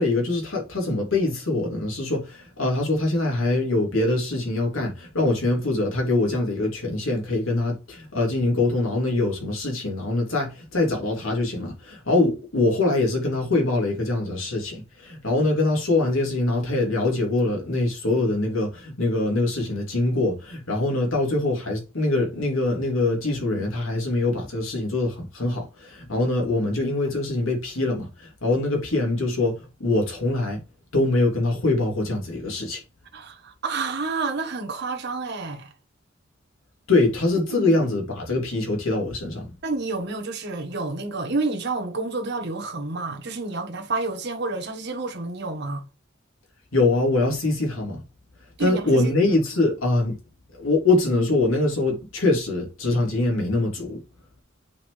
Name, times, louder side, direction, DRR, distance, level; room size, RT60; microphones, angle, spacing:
voice 1, 0.0-30.6 30.9-32.8 36.9-39.5 46.7-48.0 48.6-50.2 50.5-54.0, left 2 dB, 85° left, 3.1 m, -23 dB
voice 2, 33.1-35.7 37.6-37.7 39.6-45.9 48.6-49.1, right 3 dB, 60° right, 1.4 m, -29 dB
8.4 x 4.7 x 3.3 m
head